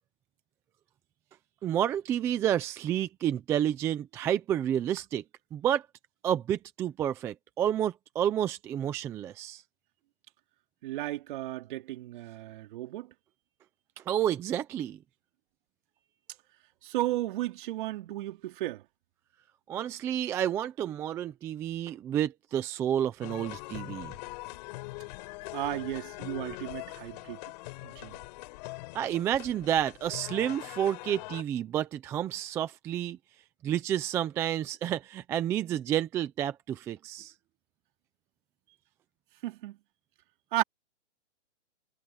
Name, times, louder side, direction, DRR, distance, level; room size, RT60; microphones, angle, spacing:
voice 1, 1.6-5.2 5.5-5.9 6.2-9.6 14.1-15.0 19.7-24.1 28.9-33.2 33.6-37.3, right 10 dB, 10° right, 0.5 m, -30 dB
voice 2, 10.8-13.1 16.8-18.8 25.5-27.4 27.8-28.2 39.4-39.8 40.5-40.6, right 16 dB, 45° right, 3.5 m, -34 dB
sound 1, 23.2-31.4, left 22 dB, 35° left, 4.1 m, -42 dB
hypercardioid pair, 155°, 35 cm